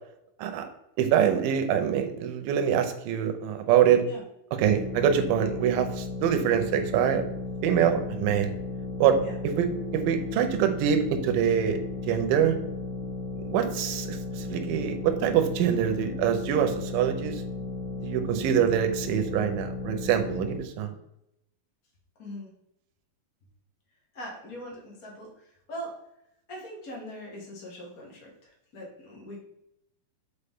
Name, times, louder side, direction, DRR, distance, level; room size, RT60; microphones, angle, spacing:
voice 1, 1.0-4.0 4.6-7.2 7.6-8.5 9.0-12.6 13.5-17.4 18.0-20.9, right 9 dB, 80° right, 6 dB, 2.3 m, -25 dB
sound 1, 4.6-20.6, left 3 dB, ahead, 1.5 m, -35 dB
voice 2, 22.2-22.5 24.1-26.0 26.5-29.4, equal, 60° left, -2 dB, 0.9 m, -41 dB
6.8 x 4.4 x 3.6 m, 0.82 s
omnidirectional pair, 4.2 m